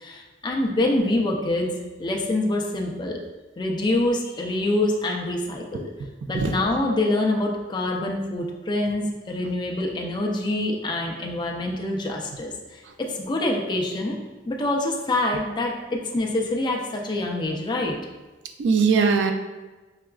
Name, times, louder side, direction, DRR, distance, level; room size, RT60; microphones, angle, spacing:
voice 1, 0.0-1.7 2.0-3.2 3.6-5.9 6.3-12.8 13.1-14.2 14.5-18.0, left 2 dB, 25° left, 0 dB, 0.4 m, -25 dB
voice 2, 6.2-6.5 18.6-19.3, right 5 dB, 85° right, 6 dB, 0.3 m, -21 dB
5.5 x 2.3 x 2.3 m, 1.2 s
head